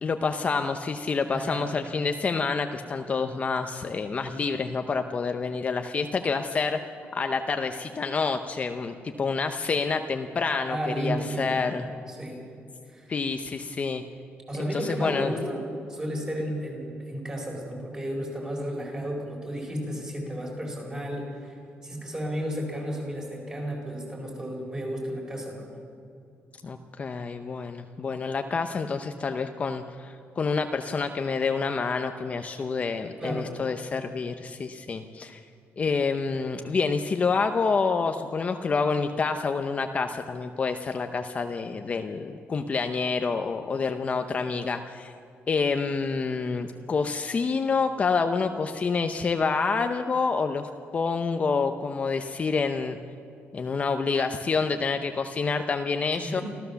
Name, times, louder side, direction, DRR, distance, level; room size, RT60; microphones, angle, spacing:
voice 1, 0.0-6.8 7.1-11.9 13.1-14.0 14.6-15.3 26.6-35.4 35.8-45.1 45.5-53.0 53.5-56.4, left 4 dB, 30° left, 6 dB, 0.7 m, -28 dB
voice 2, 1.3-1.7 10.7-11.7 12.1-12.5 12.9-13.1 14.5-21.6 21.8-25.8 33.2-33.6 56.1-56.4, equal, 15° right, 0 dB, 4.5 m, -33 dB
25.5 x 15.0 x 7.0 m, 2.4 s
cardioid pair, 165°, 5 cm